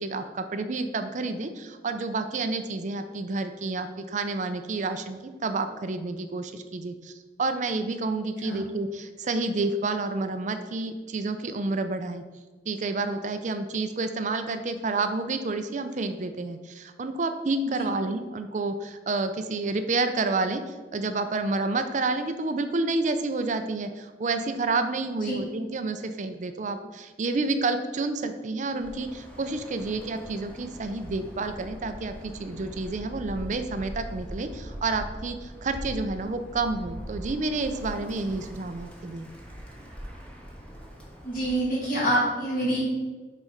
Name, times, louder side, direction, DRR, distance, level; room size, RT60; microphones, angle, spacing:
voice 1, 0.0-12.2 12.7-39.3, right 3 dB, 45° right, 8 dB, 0.4 m, -29 dB
Bird, 28.7-41.8, equal, 5° left, 1.0 m, -41 dB
voice 2, 41.2-42.8, right 1 dB, 50° left, -6 dB, 2.2 m, -26 dB
6.3 x 4.3 x 4.9 m, 1.3 s
head